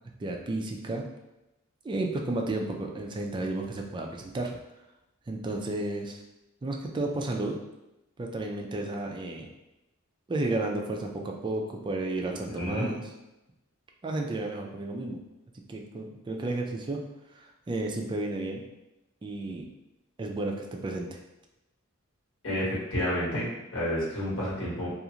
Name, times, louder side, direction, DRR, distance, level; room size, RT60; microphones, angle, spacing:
voice 1, 0.2-1.0 1.8-4.6 5.3-6.2 6.6-7.6 8.2-9.5 10.3-13.0 14.0-15.2 15.7-17.0 17.3-18.6 19.2-19.7 20.2-21.2, right 2 dB, 25° right, 1 dB, 0.3 m, -32 dB
voice 2, 12.3-12.9 22.4-24.9, equal, 65° left, -7 dB, 1.3 m, -30 dB
2.5 x 2.4 x 2.8 m, 0.95 s
head